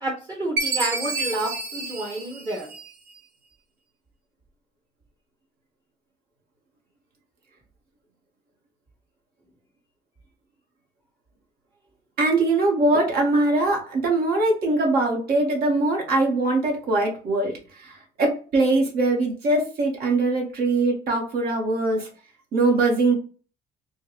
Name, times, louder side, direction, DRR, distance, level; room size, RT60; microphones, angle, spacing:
voice 1, 0.0-2.7, right 1 dB, 25° right, 0 dB, 0.9 m, -29 dB
Chime, 0.6-3.1, right 3 dB, 80° right, 0.8 m, -29 dB
voice 2, 12.2-22.1 22.5-23.1, right 2 dB, 65° right, 0 dB, 1.4 m, -22 dB
4.3 x 2.2 x 3.1 m, 0.38 s
cardioid pair, 110°, 17 cm